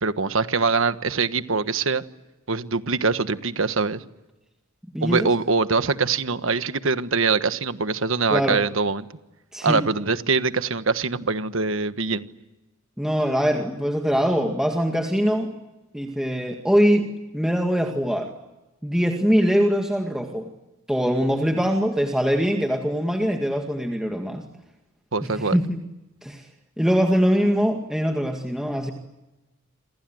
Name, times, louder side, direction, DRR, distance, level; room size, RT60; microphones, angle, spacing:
voice 1, 0.0-2.0 2.5-4.0 5.0-9.1 9.6-12.2 25.1-25.6, right 4 dB, 70° right, 11 dB, 1.4 m, -23 dB
voice 2, 4.9-5.3 8.3-8.6 9.5-9.8 13.0-15.5 15.9-18.3 18.8-20.5 20.9-24.5 25.2-25.8 26.2-26.5 26.8-28.9, equal, 5° right, 2 dB, 2.0 m, -22 dB
28.0 x 26.0 x 7.9 m, 1.0 s
head